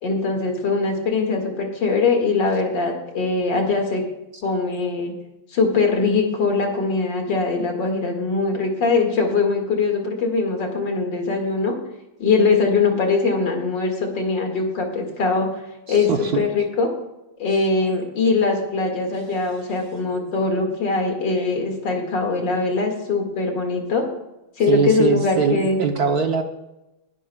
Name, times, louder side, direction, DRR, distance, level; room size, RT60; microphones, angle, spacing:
voice 1, 0.0-4.0 4.4-5.1 5.5-11.8 12.2-15.5 15.9-16.9 17.4-24.1 24.6-25.8, left 4 dB, 60° left, 2 dB, 2.8 m, -22 dB
voice 2, 15.9-16.4 24.7-26.4, right 6 dB, 60° right, 5 dB, 1.2 m, -22 dB
20.5 x 12.0 x 2.4 m, 0.95 s
omnidirectional pair, 2.2 m